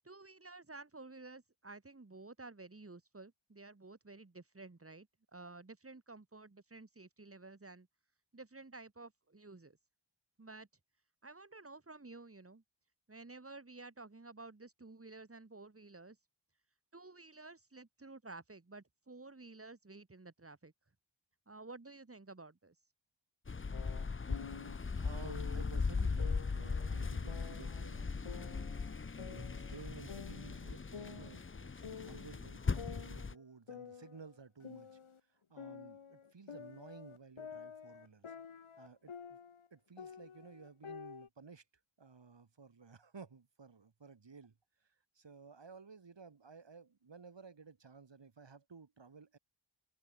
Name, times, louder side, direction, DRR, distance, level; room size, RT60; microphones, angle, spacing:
voice 1, 0.0-5.1 5.3-7.9 8.3-9.8 10.4-10.7 11.2-12.6 13.1-16.2 16.9-20.7 21.5-22.7, right 3 dB, 30° right, 3.4 m, -52 dB
sound 1, 23.5-33.3, left 4 dB, 25° left, 0.8 m, -39 dB
sound 2, 23.7-24.8 25.2-25.7 26.2-27.8 28.2-29.8 30.1-31.6 31.8-32.3 32.8-35.2 35.6-39.7 40.0-41.3, left 6 dB, 80° left, 3.7 m, -50 dB
voice 2, 25.0-28.7 29.3-35.0 35.5-38.3 38.8-39.4 39.7-41.6 42.0-44.5 45.2-49.4, right 5 dB, 60° right, 7.5 m, -55 dB
wide cardioid pair, 90°, 48 cm